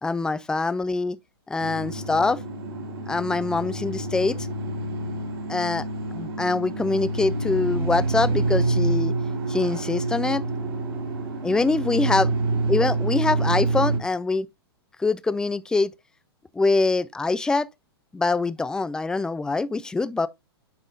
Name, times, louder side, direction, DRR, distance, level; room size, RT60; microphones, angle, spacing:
voice 1, 0.0-1.2 1.5-2.4 3.1-4.5 5.5-5.8 6.1-9.1 9.5-10.4 11.4-12.3 12.7-14.5 15.0-15.9 16.5-17.7 18.1-20.3, left 3 dB, 5° left, 0.3 m, -24 dB
sound 1, 1.6-14.0, right 2 dB, 65° right, 2.5 m, -27 dB
9.2 x 5.4 x 2.5 m
hypercardioid pair, 110°, 14 cm